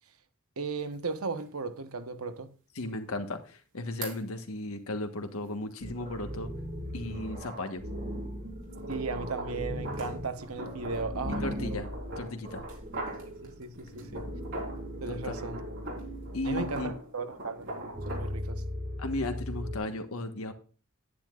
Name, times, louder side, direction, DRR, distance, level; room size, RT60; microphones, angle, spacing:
voice 1, 0.6-2.5 8.9-11.8 13.4-14.3 15.0-15.6 16.4-18.6, right 4 dB, 85° right, 1.2 m, -36 dB
sound 1, 0.8-0.9 1.4-1.5 4.0-4.2 8.7-14.9 15.2-18.3, right 2 dB, 65° right, 3.9 m, -41 dB
voice 2, 2.7-6.5 6.9-7.8 11.4-11.9 12.2-12.6 15.1-15.5 16.3-16.9 19.0-20.5, left 2 dB, 80° left, 1.4 m, -35 dB
sound 2, 5.8-17.0 17.7-19.8, equal, 45° right, 2.3 m, -39 dB
10.5 x 10.0 x 2.5 m
head